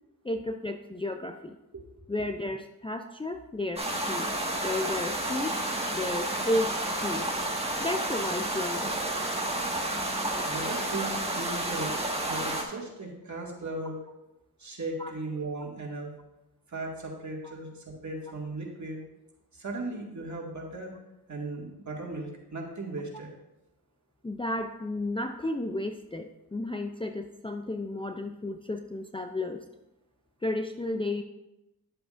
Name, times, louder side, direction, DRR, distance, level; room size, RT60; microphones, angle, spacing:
voice 1, 0.2-1.6 2.1-4.3 4.6-5.6 5.9-7.3 7.8-9.0 15.0-15.1 17.4-17.5 24.2-29.7 30.4-31.2, left 1 dB, 15° left, 5 dB, 0.5 m, -33 dB
sound 1, 3.8-12.6, right 1 dB, 15° right, 1.6 m, -31 dB
voice 2, 10.4-11.9 12.2-14.0 14.6-16.1 16.7-19.0 19.5-20.9 21.3-23.3, right 2 dB, 45° right, -1 dB, 2.1 m, -37 dB
11.0 x 7.7 x 2.5 m, 0.93 s
cardioid pair, 55°, 39 cm